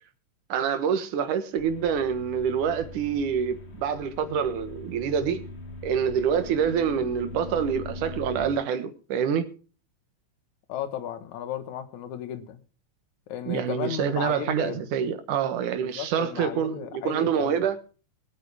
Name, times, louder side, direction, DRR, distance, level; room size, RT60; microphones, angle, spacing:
voice 1, 0.5-5.4 5.8-9.5 13.5-17.8, right 7 dB, 80° right, 2.9 m, -26 dB
sound 1, 1.6-8.5, left 2 dB, 90° left, 0.5 m, -41 dB
voice 2, 10.7-12.6 13.3-14.8 15.8-17.6, left 9 dB, 70° left, 2.7 m, -34 dB
21.5 x 9.0 x 3.5 m
omnidirectional pair, 3.6 m